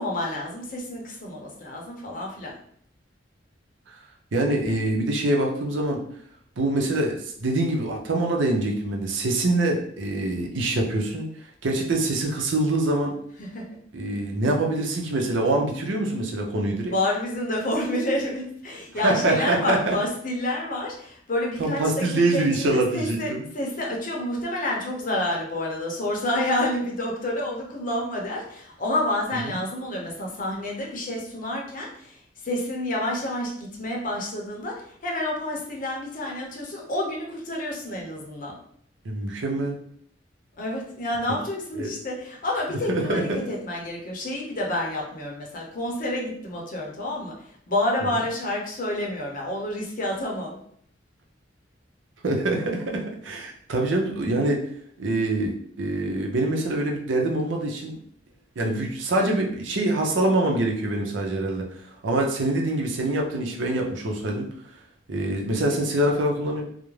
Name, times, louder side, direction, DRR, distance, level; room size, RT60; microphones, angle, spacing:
voice 1, 0.0-2.5 13.4-13.6 16.9-32.2 32.4-38.5 40.6-47.3 47.7-50.6, left 1 dB, 45° left, -1 dB, 0.7 m, -29 dB
voice 2, 4.3-6.0 6.6-11.3 11.6-13.1 13.9-16.9 18.9-20.0 21.6-23.4 29.3-29.6 39.0-39.8 41.8-41.9 42.7-43.4 52.2-54.6 55.0-58.0 58.6-61.6 62.0-64.5 65.1-66.6, right 2 dB, 90° right, 1 dB, 0.6 m, -25 dB
2.4 x 2.0 x 3.1 m, 0.64 s
head